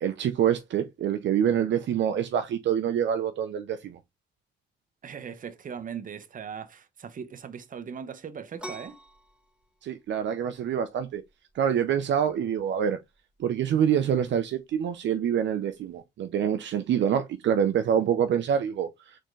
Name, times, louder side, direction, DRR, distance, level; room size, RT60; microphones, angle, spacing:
voice 1, 0.0-4.0 9.8-11.2 11.5-13.0 13.4-19.2, right 9 dB, 65° right, 0.7 m, -26 dB
voice 2, 5.0-9.0, right 7 dB, 45° right, 0.9 m, -39 dB
sound 1, 8.6-16.0, equal, 5° right, 1.8 m, -50 dB
4.3 x 3.7 x 3.1 m
cardioid pair, 90°, 20 cm